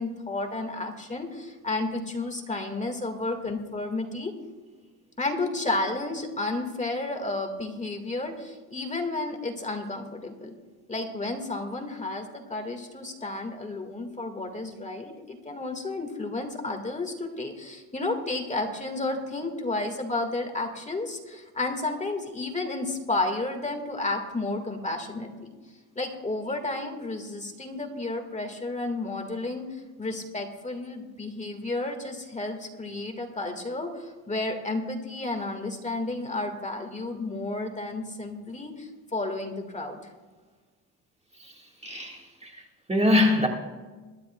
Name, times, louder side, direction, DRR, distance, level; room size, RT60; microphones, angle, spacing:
voice 1, 0.0-4.3 5.2-10.5 10.9-25.5 26.0-40.0, left 2 dB, 15° left, 5 dB, 1.7 m, -32 dB
voice 2, 41.8-42.6 42.9-43.5, left 2 dB, 15° right, 1 dB, 1.6 m, -23 dB
22.0 x 12.5 x 2.3 m, 1.3 s
cardioid pair, 110°, 40 cm